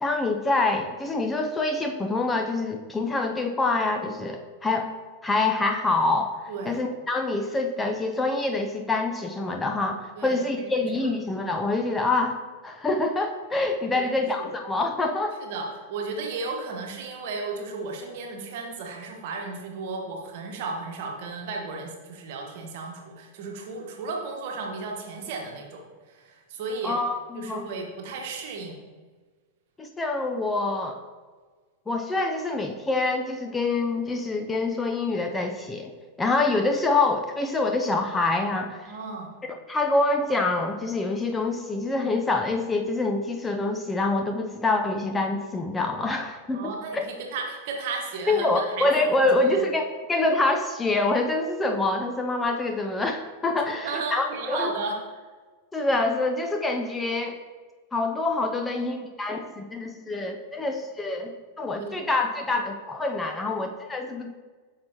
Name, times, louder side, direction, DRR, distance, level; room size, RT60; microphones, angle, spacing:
voice 1, 0.0-4.9 5.2-6.3 6.6-15.4 26.8-27.7 29.8-31.0 31.9-35.9 36.2-38.8 39.7-47.0 48.3-54.7 55.7-57.4 57.9-61.3 61.6-64.3, left 2 dB, 10° left, 4 dB, 0.6 m, -26 dB
voice 2, 10.2-10.6 13.9-14.5 15.4-27.0 27.3-28.8 38.9-39.3 46.5-48.9 49.2-49.6 53.7-55.0 61.8-62.0, right 4 dB, 50° right, 2 dB, 1.2 m, -34 dB
8.5 x 5.9 x 2.9 m, 1.4 s
figure-of-eight pair, 90°, 0 cm